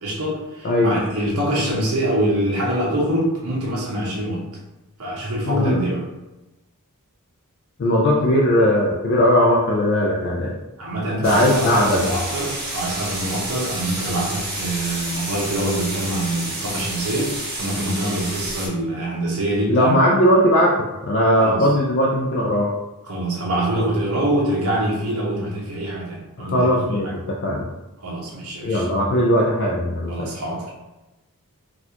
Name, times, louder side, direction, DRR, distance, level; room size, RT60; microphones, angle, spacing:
voice 1, 0.0-4.4 5.0-6.0 10.8-20.0 21.3-21.7 23.1-27.1 28.0-28.9 30.1-30.7, right 1 dB, 70° right, -5 dB, 0.8 m, -25 dB
voice 2, 5.5-5.8 7.8-10.5 11.2-12.1 19.7-20.8 21.0-22.7 26.4-27.7 28.6-30.3, equal, 50° left, -3 dB, 0.4 m, -18 dB
sound 1, 11.2-18.7, right 2 dB, 45° right, 1.3 m, -30 dB
4.1 x 2.4 x 2.9 m, 1.0 s
head